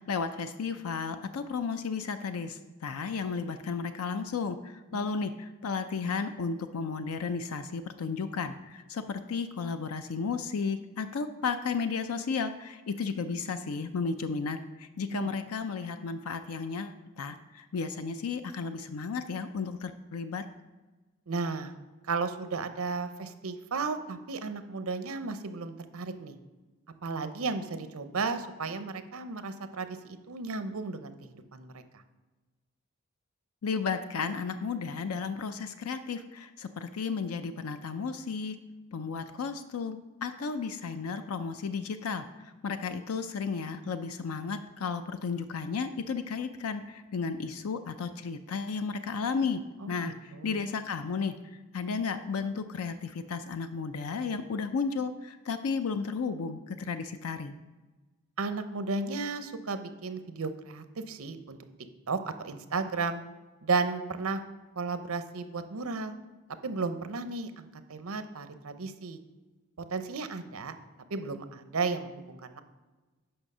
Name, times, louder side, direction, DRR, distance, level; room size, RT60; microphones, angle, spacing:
voice 1, 0.0-20.4 33.6-38.6 38.9-49.6 49.9-57.6, left 5 dB, 85° left, 9 dB, 0.5 m, -33 dB
voice 2, 21.3-21.7 22.0-26.4 27.0-32.0 49.8-50.6 58.4-61.6 62.1-63.2 63.6-64.4 64.8-66.2 66.6-69.2 69.9-70.7 71.1-72.6, right 4 dB, 80° right, 10 dB, 0.7 m, -34 dB
8.8 x 5.7 x 5.4 m, 1.2 s
head